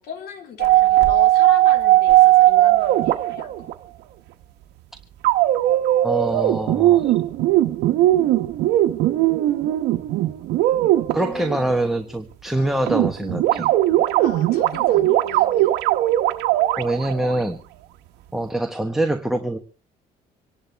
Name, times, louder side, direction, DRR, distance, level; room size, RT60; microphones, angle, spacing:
voice 1, 0.0-3.8 11.2-12.0 12.6-12.7 14.2-15.8, left 6 dB, 70° left, 3 dB, 3.4 m, -37 dB
sound 1, 0.6-3.7 5.2-11.7 12.9-17.3, right 15 dB, 85° right, 1.0 m, -18 dB
voice 2, 6.0-7.1 11.1-13.7 16.7-17.6 18.3-19.6, right 1 dB, ahead, 5 dB, 1.2 m, -24 dB
26.0 x 11.5 x 3.4 m, 0.36 s
cardioid pair, 110°, 17 cm